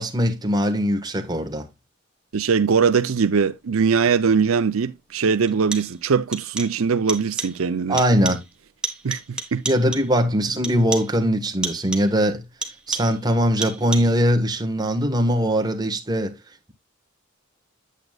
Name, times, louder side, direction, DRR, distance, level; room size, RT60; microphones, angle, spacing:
voice 1, 0.0-1.7 7.9-8.4 9.6-12.4 12.9-16.4, equal, 20° right, 1.4 m, -21 dB
voice 2, 2.3-8.0 9.0-9.6, right 5 dB, 80° right, 0.5 m, -21 dB
sound 1, 4.4-4.5 5.5-6.0 6.3-6.8 7.1-7.6 8.0-8.5 8.8-10.2 10.6-11.2 11.6-12.2 12.6-13.3 13.6-14.2, right 2 dB, 5° right, 1.4 m, -32 dB
9.0 x 8.4 x 2.3 m
head